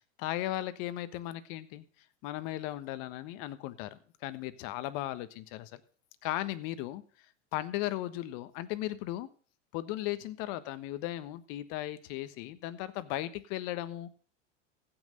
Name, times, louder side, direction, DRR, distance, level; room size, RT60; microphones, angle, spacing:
voice 1, 0.2-1.8 2.2-5.8 6.2-7.0 7.5-9.3 9.7-14.1, left 14 dB, 55° left, 13 dB, 1.3 m, -36 dB
15.5 x 6.1 x 6.7 m, 0.43 s
hypercardioid pair, 110°, 37 cm